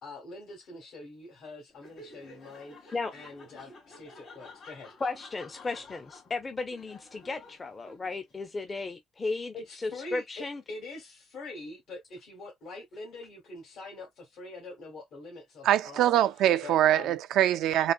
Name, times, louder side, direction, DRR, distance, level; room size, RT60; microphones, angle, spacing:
voice 1, 0.0-4.9 9.5-16.1 16.6-17.2, left 2 dB, 75° left, 1.6 m, -44 dB
Laughter, 1.7-8.3, left 3 dB, 60° left, 2.2 m, -51 dB
voice 2, 5.0-10.6, left 3 dB, 30° left, 0.6 m, -35 dB
voice 3, 15.6-17.9, right 12 dB, 85° right, 0.3 m, -23 dB
4.0 x 2.1 x 2.4 m
cardioid pair, 90°, 0 cm